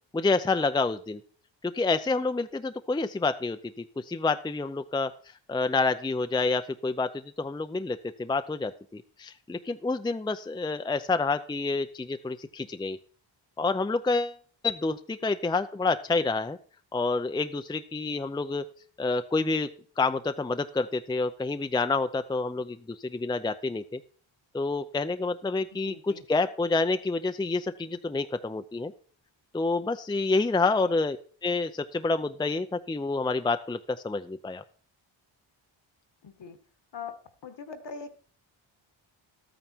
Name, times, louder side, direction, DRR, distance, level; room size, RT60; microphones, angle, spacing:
voice 1, 0.1-1.2 1.6-5.1 5.5-13.0 13.6-14.4 14.6-16.6 16.9-18.6 19.0-19.7 20.0-24.0 24.5-28.9 29.5-31.2 31.4-34.6, left 3 dB, 10° left, 9 dB, 0.5 m, -28 dB
voice 2, 25.8-26.2 30.8-31.0 36.2-36.6 36.9-37.2 37.4-38.1, left 5 dB, 60° left, 10 dB, 1.5 m, -41 dB
12.0 x 9.0 x 4.5 m, 0.43 s
cardioid pair, 90°, 47 cm